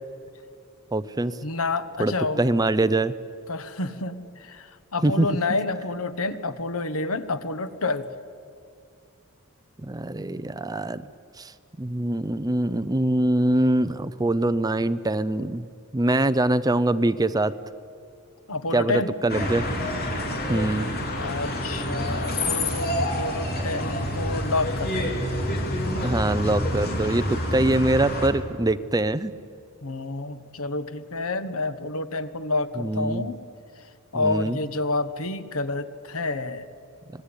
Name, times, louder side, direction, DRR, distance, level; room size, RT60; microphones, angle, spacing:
voice 1, 0.9-1.4 2.0-3.1 5.0-5.3 9.8-11.0 11.4-11.5 11.8-15.7 15.9-17.5 18.7-19.7 20.5-20.9 26.0-29.3 32.8-33.2 34.1-34.6, right 1 dB, 15° right, 14 dB, 0.6 m, -23 dB
voice 2, 1.4-2.4 3.5-8.1 18.5-19.1 21.2-25.1 29.8-33.4 34.1-36.7, left 3 dB, 70° left, 11 dB, 1.3 m, -29 dB
sound 1, 19.3-28.3, left 1 dB, 45° left, 4.3 m, -28 dB
26.5 x 20.0 x 9.9 m, 2.4 s
head